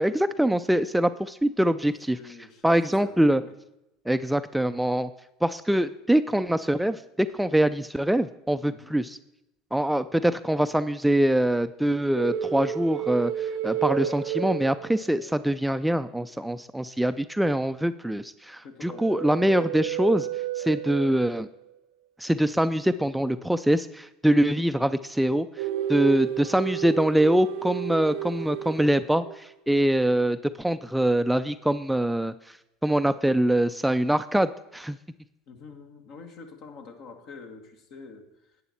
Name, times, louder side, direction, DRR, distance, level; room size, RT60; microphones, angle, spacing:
voice 1, 0.0-2.2 2.6-3.4 4.1-5.1 5.4-9.2 9.7-20.3 20.6-21.5 22.2-25.5 25.9-32.3 32.8-35.0, right 1 dB, 5° right, 11 dB, 0.4 m, -24 dB
voice 2, 2.1-3.5 8.6-8.9 18.6-19.5 35.5-38.6, left 4 dB, 60° left, 4 dB, 1.8 m, -46 dB
sound 1, 12.2-15.3 18.9-21.5 25.6-29.4, right 11 dB, 70° right, 0.4 m, -32 dB
11.0 x 8.6 x 4.4 m, 0.86 s
hypercardioid pair, 80°, 0 cm